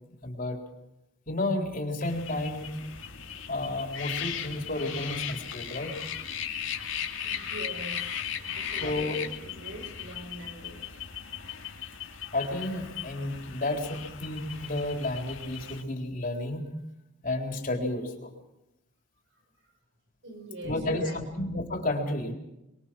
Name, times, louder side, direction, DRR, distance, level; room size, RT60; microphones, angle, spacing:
voice 1, 0.2-0.6 1.3-2.8 3.5-5.9 8.8-9.2 12.3-16.6 17.2-18.3 20.6-22.3, left 2 dB, 45° left, 2 dB, 3.9 m, -31 dB
sound 1, 2.0-15.8, left 8 dB, 75° left, 2.4 m, -37 dB
voice 2, 7.2-10.9 20.2-21.2, right 1 dB, 65° right, 5 dB, 5.4 m, -43 dB
25.0 x 22.0 x 6.2 m, 0.90 s
head